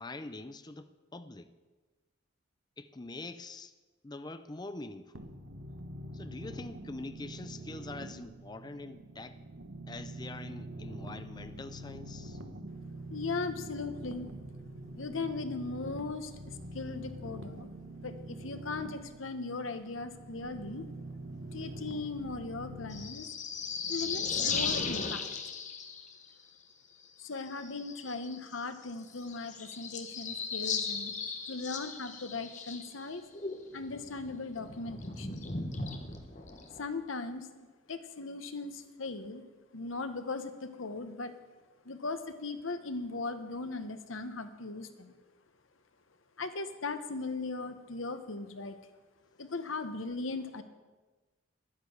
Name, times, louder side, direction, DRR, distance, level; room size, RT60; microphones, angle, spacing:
voice 1, 0.0-1.5 2.8-3.7 4.0-5.3 6.1-9.4 9.9-12.4, left 2 dB, 20° left, 0.5 m, -44 dB
sound 1, 5.1-23.0, right 1 dB, 80° right, 1.2 m, -45 dB
voice 2, 13.1-14.3 15.0-17.7 18.0-20.9 21.5-23.3 23.9-25.5 27.2-31.1 31.5-33.2 33.7-35.4 36.8-39.4 39.7-41.3 41.8-45.1 46.4-48.8 49.4-50.6, left 3 dB, 80° left, 1.1 m, -38 dB
sound 2, 22.9-26.2 27.4-28.5 28.8-28.9 29.1-33.0 33.3-36.9, left 5 dB, 35° left, 1.2 m, -37 dB
10.5 x 10.0 x 8.0 m
head